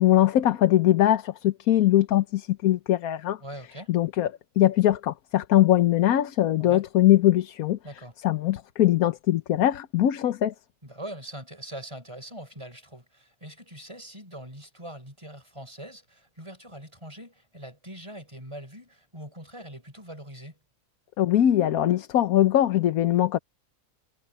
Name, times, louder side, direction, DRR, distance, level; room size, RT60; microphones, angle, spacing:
voice 1, 0.0-3.4 3.9-4.3 4.6-7.8 8.2-10.5 21.2-23.4, left 12 dB, 75° left, 1.3 m, -21 dB
voice 2, 3.4-3.9 6.6-6.8 7.8-8.1 10.8-20.6, right 1 dB, 20° right, 5.0 m, -42 dB
omnidirectional pair, 1.5 m